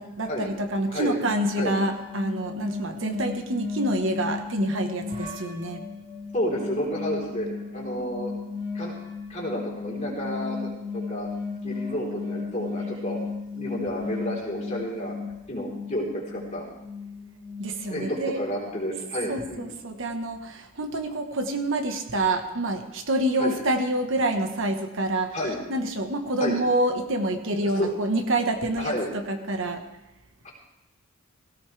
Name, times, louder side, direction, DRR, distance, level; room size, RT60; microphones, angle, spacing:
voice 1, 0.0-5.8 17.6-18.4 19.3-25.4 25.7-29.8, right 1 dB, 65° right, 6 dB, 1.3 m, -27 dB
sound 1, 1.2-18.9, left 4 dB, 40° right, 4.8 m, -35 dB
voice 2, 6.3-8.3 8.7-8.9 9.3-11.3 11.6-13.2 13.5-15.1 15.5-16.6 17.9-18.1 18.4-19.7 23.4-23.5 25.3-25.6 26.4-26.6 27.6-27.9 28.8-29.1 30.4-30.5, equal, 35° left, -3 dB, 3.9 m, -30 dB
17.0 x 16.5 x 3.4 m, 0.93 s
head